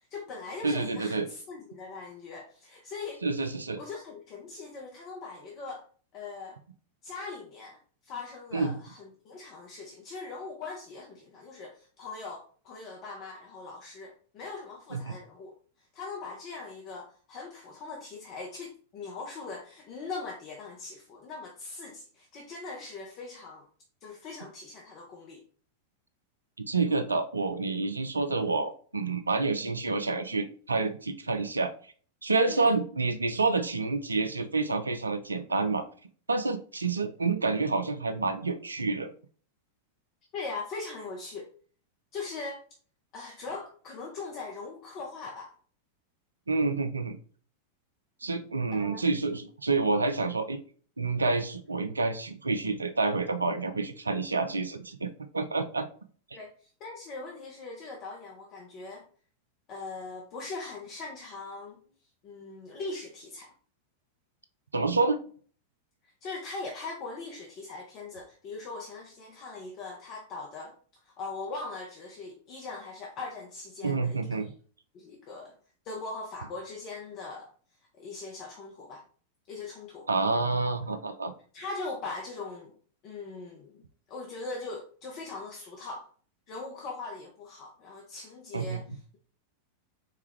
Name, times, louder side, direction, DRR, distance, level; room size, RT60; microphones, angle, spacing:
voice 1, 0.1-3.2 3.8-5.8 6.1-6.6 7.0-15.5 15.9-23.6 24.0-25.4 32.5-32.7 40.3-41.5 42.1-42.6 43.1-45.5 48.7-49.0 56.3-59.0 59.7-61.8 62.2-63.5 66.0-70.7 71.0-74.5 74.9-75.6 75.8-77.5 78.0-79.0 79.5-80.1 81.5-82.8 83.0-83.8 84.1-86.1 86.5-88.8, left 3 dB, 40° left, -1 dB, 0.7 m, -41 dB
voice 2, 0.6-1.3 3.2-3.8 8.5-8.8 14.9-15.0 26.7-31.7 32.2-35.8 36.3-39.1 46.5-47.2 48.2-50.6 51.0-55.9 64.7-65.2 73.8-74.5 80.1-81.3 88.5-88.8, right 3 dB, 75° right, 9 dB, 0.4 m, -28 dB
4.5 x 2.3 x 3.2 m, 0.44 s
figure-of-eight pair, 90°, 0 cm